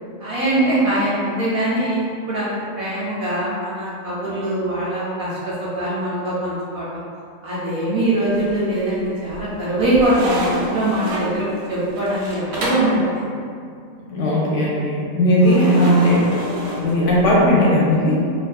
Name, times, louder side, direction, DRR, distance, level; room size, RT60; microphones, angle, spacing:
voice 1, 0.2-5.3 5.8-7.0 7.4-13.2, right 1 dB, 65° right, -8 dB, 0.7 m, -22 dB
sound 1, 8.3-8.9 9.3-13.0 15.4-17.5, right 1 dB, 90° right, 1.0 m, -29 dB
voice 2, 14.1-16.3 16.8-18.2, equal, 70° left, -5 dB, 0.9 m, -17 dB
2.6 x 2.4 x 2.3 m, 2.4 s
omnidirectional pair, 1.4 m